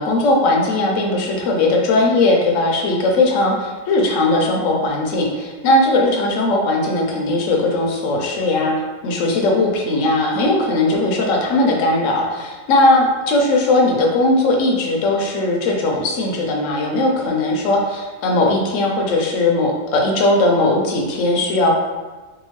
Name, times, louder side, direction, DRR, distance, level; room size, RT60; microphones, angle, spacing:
voice 1, 0.0-8.7 9.0-21.8, left 2 dB, 75° left, 0 dB, 0.9 m, -18 dB
2.8 x 2.2 x 2.9 m, 1.3 s
omnidirectional pair, 1.4 m